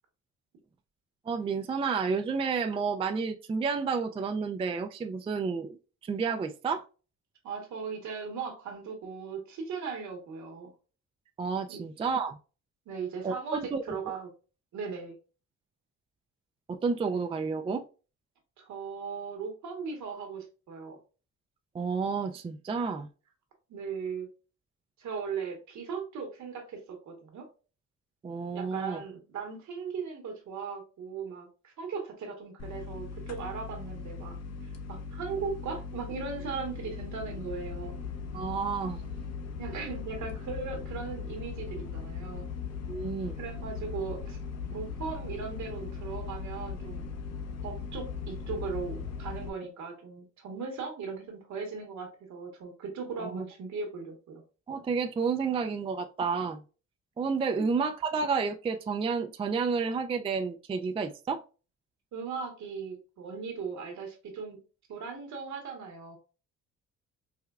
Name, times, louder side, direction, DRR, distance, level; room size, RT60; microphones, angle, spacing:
voice 1, 1.3-5.8 6.0-6.8 11.4-12.4 13.2-13.8 16.7-17.8 21.7-23.1 28.2-29.0 38.3-39.0 42.9-43.4 53.2-53.4 54.7-56.6 57.2-61.4, right 5 dB, 20° right, 0.3 m, -30 dB
voice 2, 7.4-10.7 11.7-11.8 12.9-13.6 13.8-14.3 14.7-15.1 18.6-21.0 23.7-24.3 25.0-27.4 28.5-34.4 34.6-37.9 39.6-42.4 43.4-44.4 44.7-47.1 47.6-54.4 57.5-57.7 62.1-64.6 64.9-66.2, right 5 dB, 70° right, 1.3 m, -38 dB
sound 1, 32.6-49.5, left 5 dB, 55° left, 0.7 m, -39 dB
4.8 x 2.2 x 2.3 m
cardioid pair, 90°, 30 cm